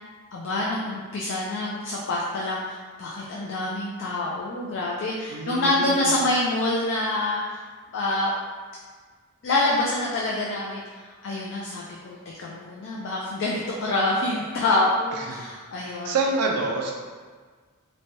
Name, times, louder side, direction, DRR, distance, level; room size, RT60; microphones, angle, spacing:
voice 1, 0.3-7.6 7.9-8.3 9.4-10.8 11.2-16.1, left 2 dB, 60° left, -5 dB, 0.4 m, -26 dB
voice 2, 5.3-6.2 15.2-15.5 15.8-16.9, right 3 dB, 80° right, 0 dB, 0.3 m, -28 dB
3.1 x 2.2 x 2.6 m, 1.5 s
head